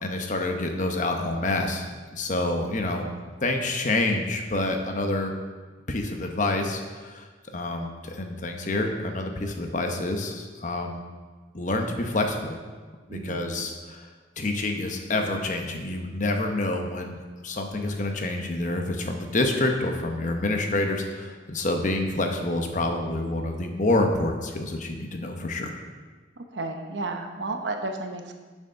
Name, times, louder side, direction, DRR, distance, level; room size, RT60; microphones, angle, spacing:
voice 1, 0.0-1.8 2.1-3.1 3.4-5.3 5.9-7.3 7.5-11.0 11.5-12.6 13.1-14.1 14.4-25.7, left 2 dB, 45° left, 4 dB, 0.9 m, -27 dB
voice 2, 13.1-13.5 26.4-28.3, right 2 dB, 85° right, 4 dB, 0.9 m, -32 dB
7.2 x 6.6 x 5.6 m, 1.4 s
head